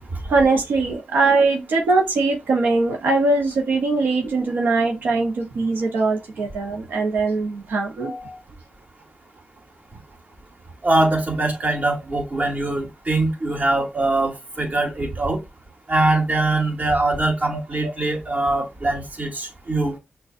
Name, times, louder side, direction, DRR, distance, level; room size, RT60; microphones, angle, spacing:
voice 1, 0.3-8.4 17.5-17.6, right 3 dB, 90° right, 0.8 m, -21 dB
voice 2, 10.8-15.4 15.9-19.9, right 2 dB, 50° right, 2.0 m, -22 dB
6.3 x 2.3 x 2.5 m
cardioid pair, 75°, 3 cm